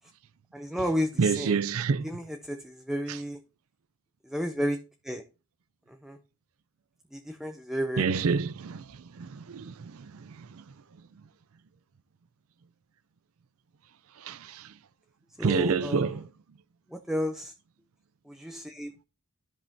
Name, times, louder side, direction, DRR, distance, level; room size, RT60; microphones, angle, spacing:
voice 1, 0.5-1.6 2.0-3.4 4.2-4.8 5.0-5.2 5.9-6.2 7.1-8.0 15.4-16.2 16.9-17.5 18.3-18.9, equal, ahead, 0.5 m, -32 dB
voice 2, 1.2-2.1 3.1-3.2 8.0-10.6 14.2-14.7 15.4-16.3, right 5 dB, 70° right, 0.5 m, -28 dB
13.0 x 5.4 x 2.7 m
head